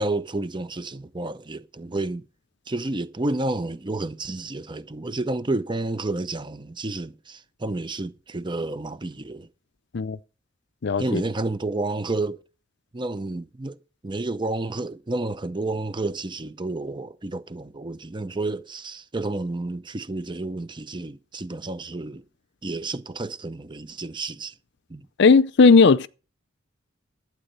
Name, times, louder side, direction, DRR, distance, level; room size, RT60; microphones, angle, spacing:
voice 1, 0.0-2.2 2.7-9.5 11.0-12.4 12.9-13.8 14.0-22.2 22.6-24.5 24.9-25.1, right 2 dB, 25° right, 0.7 m, -30 dB
voice 2, 10.8-11.2 25.2-26.1, left 4 dB, 60° left, 0.5 m, -16 dB
12.0 x 8.9 x 5.5 m
head